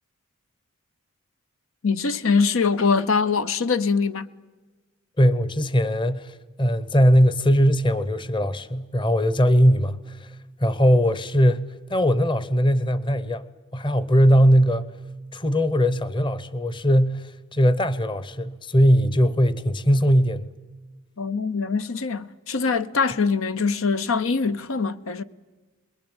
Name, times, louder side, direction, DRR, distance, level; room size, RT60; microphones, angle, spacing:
voice 1, 1.8-4.3 21.2-25.2, left 5 dB, 75° left, 0.8 m, -23 dB
voice 2, 5.2-13.4 13.7-14.9 15.3-20.5, equal, 25° left, 0.9 m, -20 dB
28.5 x 21.5 x 8.9 m
head